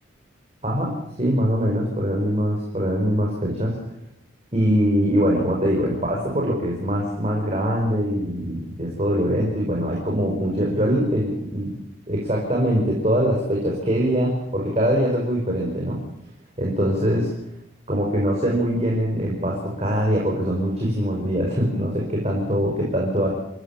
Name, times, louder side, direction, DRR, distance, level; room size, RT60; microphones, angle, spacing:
voice 1, 1.2-3.8 4.5-11.7 12.1-16.0 16.6-17.3 17.9-23.3, equal, 30° right, -2 dB, 5.2 m, -23 dB
28.0 x 15.0 x 7.3 m, 0.82 s
head